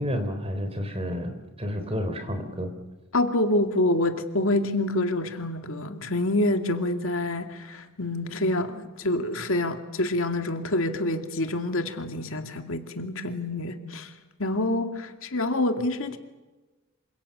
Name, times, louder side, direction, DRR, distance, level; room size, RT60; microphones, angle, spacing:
voice 1, 0.0-1.3 1.6-2.7, equal, 25° right, 7 dB, 3.8 m, -30 dB
voice 2, 3.1-14.1 14.4-16.2, left 1 dB, 65° left, 6 dB, 2.3 m, -27 dB
27.5 x 26.5 x 6.8 m, 1.1 s
head